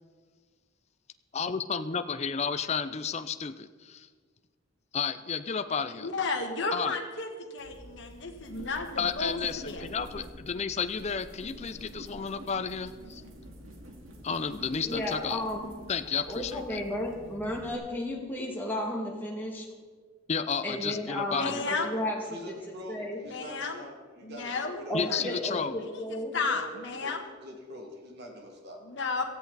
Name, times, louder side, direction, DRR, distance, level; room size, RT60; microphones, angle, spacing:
voice 1, 1.3-4.1 4.9-6.1 6.7-7.0 9.0-13.2 14.2-15.4 15.9-16.8 20.3-21.7 24.9-25.8, left 6 dB, 30° left, 10 dB, 0.5 m, -32 dB
voice 2, 6.0-9.4 9.6-9.8 21.3-22.0 23.2-23.8 24.2-24.8 25.1-25.4 25.8-26.0 26.3-27.2 28.9-29.2, left 3 dB, 55° left, 2 dB, 1.7 m, -33 dB
sound 1, 7.6-17.7, equal, 70° right, 2.2 m, -47 dB
voice 3, 14.9-15.7 16.3-19.7 20.6-22.2 22.5-23.2 24.9-26.4, left 1 dB, 10° left, -2 dB, 2.3 m, -33 dB
voice 4, 22.2-25.2 26.3-27.1 27.4-28.8, equal, 50° right, 1 dB, 2.5 m, -44 dB
17.5 x 13.5 x 4.1 m, 1.5 s
head